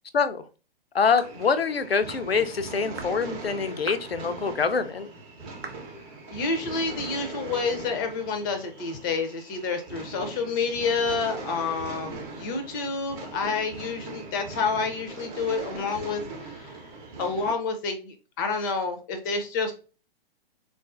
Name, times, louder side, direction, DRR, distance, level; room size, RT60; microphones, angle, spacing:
voice 1, 0.1-0.5 0.9-5.1, left 5 dB, 90° left, 11 dB, 0.5 m, -25 dB
sound 1, 1.2-17.5, right 3 dB, 20° right, 0.7 m, -40 dB
sound 2, 1.2-1.4 2.1-2.3 3.0-3.2 3.9-4.1 4.8-4.9 5.6-5.9, right 4 dB, 85° right, 0.6 m, -39 dB
voice 2, 6.3-16.8 17.2-19.7, left 4 dB, 20° left, 6 dB, 0.5 m, -29 dB
3.7 x 2.4 x 2.4 m, 0.35 s
figure-of-eight pair, 120°, 29 cm